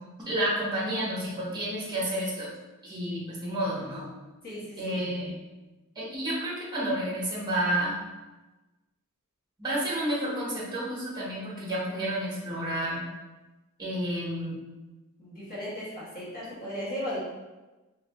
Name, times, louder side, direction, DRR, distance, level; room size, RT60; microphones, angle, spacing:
voice 1, 0.3-2.5 2.8-4.1 4.8-5.4 5.9-8.0 9.6-13.0 13.8-14.5, right 1 dB, 20° right, -6 dB, 1.4 m, -30 dB
voice 2, 4.4-5.0 15.2-17.2, equal, 40° left, -9 dB, 1.5 m, -36 dB
3.4 x 3.2 x 3.6 m, 1.1 s
head